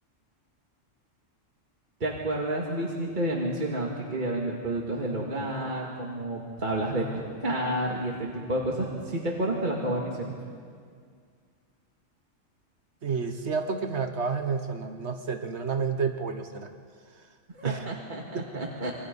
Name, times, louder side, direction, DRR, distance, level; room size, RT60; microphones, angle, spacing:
voice 1, 2.0-10.3 17.5-18.9, right 1 dB, 40° right, -3 dB, 2.4 m, -30 dB
voice 2, 13.0-16.7 17.6-17.8 18.3-18.5, right 5 dB, 60° right, 7 dB, 1.3 m, -30 dB
27.0 x 24.0 x 5.4 m, 2.1 s
omnidirectional pair, 1.3 m